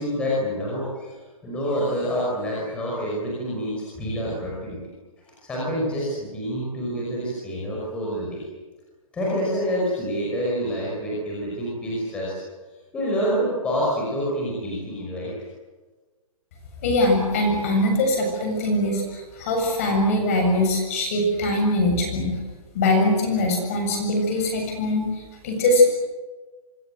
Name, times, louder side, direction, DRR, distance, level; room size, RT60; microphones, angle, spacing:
voice 1, 0.0-4.8 5.4-8.4 9.1-12.3 12.9-15.3, equal, 5° left, -6 dB, 5.5 m, -27 dB
voice 2, 16.8-22.4 22.7-25.9, left 1 dB, 25° left, 3 dB, 7.2 m, -22 dB
26.5 x 25.5 x 7.9 m, 1.2 s
hypercardioid pair, 180°, 18 cm